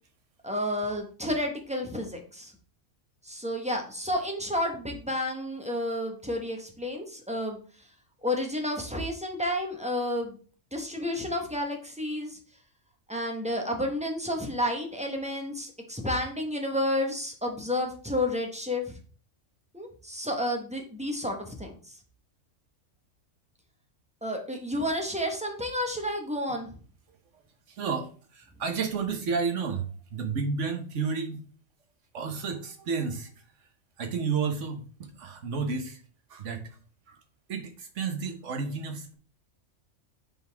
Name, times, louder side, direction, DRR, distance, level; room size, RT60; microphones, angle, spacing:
voice 1, 0.4-2.5 3.2-7.6 8.2-10.4 10.7-12.4 13.1-19.0 19.7-21.7 24.2-26.7, left 1 dB, 5° right, 2 dB, 1.1 m, -31 dB
voice 2, 27.7-31.4 32.1-33.3 34.0-36.0 36.3-36.8 37.1-37.2 37.5-39.1, right 5 dB, 75° right, 5 dB, 1.4 m, -31 dB
7.8 x 4.0 x 3.5 m, 0.41 s
omnidirectional pair, 1.3 m